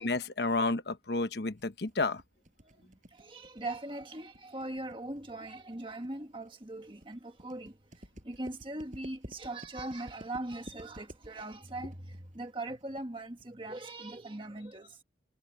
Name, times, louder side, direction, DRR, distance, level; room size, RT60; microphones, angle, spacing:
voice 1, 0.0-2.2, left 3 dB, 65° left, 1.1 m, -31 dB
sound 1, 1.6-13.5, equal, 45° right, 5.8 m, -52 dB
voice 2, 2.6-7.8 8.2-15.0, right 2 dB, 30° right, 1.6 m, -40 dB
head